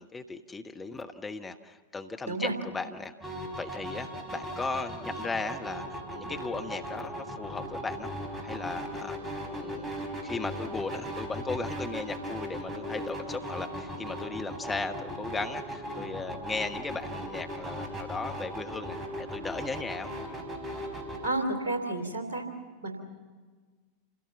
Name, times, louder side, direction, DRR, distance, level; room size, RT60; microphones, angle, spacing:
voice 1, 0.0-8.1 8.4-20.1, left 3 dB, 15° left, 6 dB, 1.1 m, -37 dB
sound 1, 3.2-21.3, equal, 20° right, 4.6 m, -38 dB
voice 2, 21.2-22.5 22.8-23.0, right 2 dB, 70° right, 5 dB, 3.2 m, -31 dB
28.0 x 16.5 x 7.0 m, 1.5 s
figure-of-eight pair, 85°, 0 cm